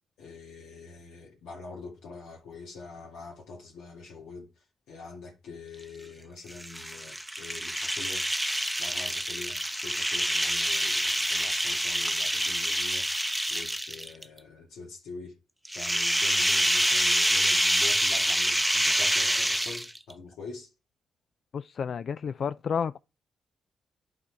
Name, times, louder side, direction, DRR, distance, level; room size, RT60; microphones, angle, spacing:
voice 1, 0.2-4.5 4.9-8.3 8.8-13.2 13.5-15.3 15.7-20.7, left 4 dB, 80° left, 2.3 m, -44 dB
sound 1, 6.5-14.2 15.7-20.1, right 1 dB, 5° right, 0.8 m, -27 dB
voice 2, 21.5-23.0, left 6 dB, 60° left, 0.3 m, -31 dB
11.0 x 4.3 x 4.7 m
supercardioid pair, 55°, 0 cm